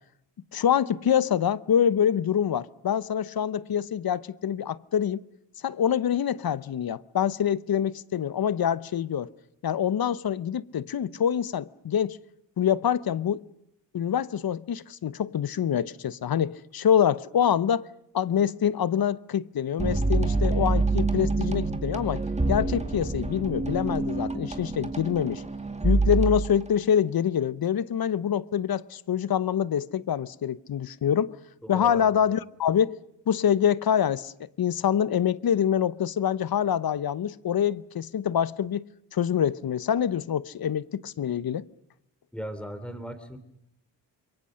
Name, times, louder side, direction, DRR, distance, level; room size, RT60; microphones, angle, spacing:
voice 1, 0.5-5.2 5.6-9.3 9.6-12.2 12.6-13.4 13.9-17.8 18.1-22.2 22.5-25.4 25.8-31.4 31.7-33.0 33.3-34.3 34.6-38.8 39.1-41.6, left 9 dB, 55° left, 0.9 m, -25 dB
sound 1, 19.8-26.7, right 3 dB, 15° right, 2.3 m, -26 dB
voice 2, 31.6-32.1 42.3-43.4, equal, ahead, 3.5 m, -37 dB
27.0 x 23.0 x 6.5 m
cardioid pair, 75°, 43 cm